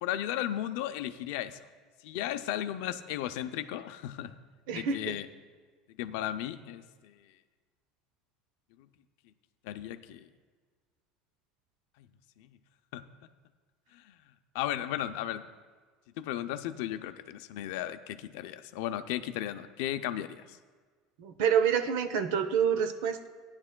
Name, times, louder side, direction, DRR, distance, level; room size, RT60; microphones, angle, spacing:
voice 1, 0.0-1.6 2.0-4.4 4.7-5.3 5.9-7.2 8.8-8.9 9.6-10.3 12.0-12.1 12.4-12.6 12.9-13.1 13.9-14.1 14.5-15.5 16.2-20.6, left 12 dB, 75° left, 11 dB, 0.5 m, -35 dB
voice 2, 4.7-5.2 21.2-23.3, right 7 dB, 75° right, 9 dB, 0.7 m, -27 dB
16.0 x 10.5 x 2.2 m, 1.5 s
cardioid pair, 155°, 0 cm